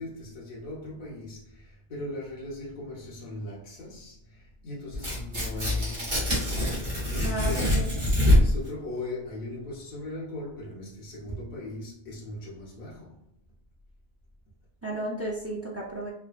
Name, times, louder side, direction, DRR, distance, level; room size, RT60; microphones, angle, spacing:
voice 1, 0.0-6.6 7.0-13.2, left 2 dB, 50° left, 0.9 m, -38 dB
Tearing, 4.9-8.7, left 1 dB, 45° right, 1.4 m, -24 dB
voice 2, 7.2-7.9 14.8-16.1, right 1 dB, 25° right, 0.3 m, -33 dB
3.3 x 2.1 x 2.4 m
omnidirectional pair, 1.0 m